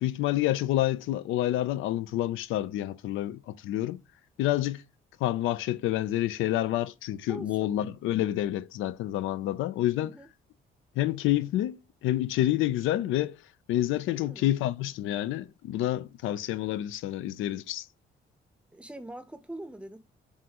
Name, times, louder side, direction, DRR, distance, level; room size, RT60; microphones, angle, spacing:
voice 1, 0.0-4.0 4.4-4.8 5.2-10.1 11.0-13.4 13.7-17.9, left 14 dB, 85° left, 0.4 m, -28 dB
voice 2, 7.3-7.8 10.0-10.3 14.1-14.5 18.7-20.0, right 1 dB, 5° right, 0.6 m, -43 dB
5.6 x 2.6 x 2.9 m
cardioid pair, 90°, 20 cm